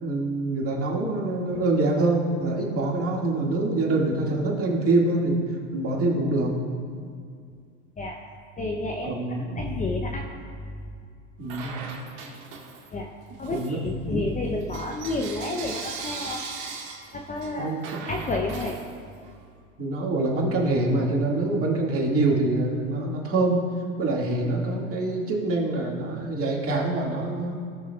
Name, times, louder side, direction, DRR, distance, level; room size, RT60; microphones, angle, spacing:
voice 1, 0.0-5.4 5.7-6.5 9.0-9.6 11.4-11.7 13.5-14.3 17.6-17.8 19.8-23.6 24.0-27.6, right 2 dB, 35° right, -2 dB, 2.1 m, -25 dB
voice 2, 8.6-10.9 12.9-13.1 13.4-16.5 17.1-18.8, left 2 dB, 20° left, 1 dB, 0.7 m, -31 dB
Bell / Coin (dropping), 11.5-13.0 13.4-19.4, right 5 dB, 55° right, 1.7 m, -39 dB
17.5 x 6.3 x 2.4 m, 2.2 s
hypercardioid pair, 95°, 39 cm